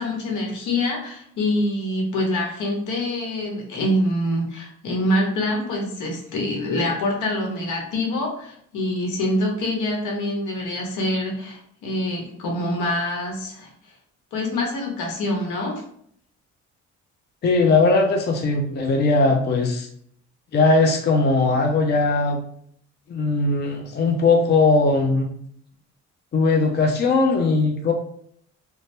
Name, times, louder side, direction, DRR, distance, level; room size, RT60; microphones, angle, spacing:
voice 1, 0.0-13.7 14.3-15.8, left 1 dB, 80° left, 0 dB, 1.0 m, -25 dB
voice 2, 17.4-19.9 20.5-22.4 23.1-25.3 26.3-27.9, left 3 dB, 35° left, 3 dB, 0.5 m, -19 dB
2.6 x 2.1 x 3.2 m, 0.66 s
cardioid pair, 90°, 30 cm